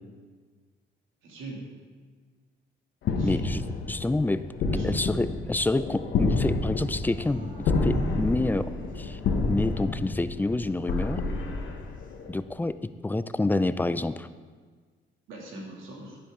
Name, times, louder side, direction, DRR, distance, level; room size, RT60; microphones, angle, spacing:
voice 1, 1.2-1.7 3.1-3.5 4.7-5.0 15.3-16.2, right 1 dB, 90° right, -2 dB, 2.6 m, -41 dB
sound 1, 3.0-12.3, left 3 dB, 80° left, 1.3 m, -29 dB
voice 2, 3.2-4.4 4.8-9.2 9.5-11.2 12.3-14.3, left 2 dB, 10° left, 13 dB, 0.4 m, -28 dB
Dog / Siren, 7.1-9.3 9.6-9.7 10.7-12.2, right 2 dB, 45° right, 1.6 m, -48 dB
11.0 x 10.0 x 3.8 m, 1.5 s
cardioid pair, 90°, 20 cm